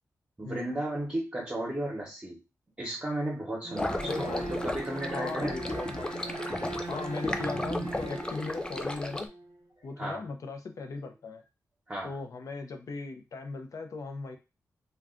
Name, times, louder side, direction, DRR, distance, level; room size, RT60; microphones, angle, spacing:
voice 1, 0.4-2.4 2.8-5.6 9.8-10.2 11.9-12.2, right 1 dB, 20° right, -4 dB, 0.8 m, -34 dB
Bowed string instrument, 3.6-9.6, right 2 dB, 85° right, 0.6 m, -39 dB
sound 1, 3.7-9.2, left 2 dB, 15° left, 0.3 m, -35 dB
voice 2, 4.0-4.6 5.1-6.4 6.9-9.3 9.8-11.4 12.0-14.4, left 3 dB, 60° left, 5 dB, 0.6 m, -38 dB
2.3 x 2.3 x 3.7 m, 0.28 s
wide cardioid pair, 125°, 6 cm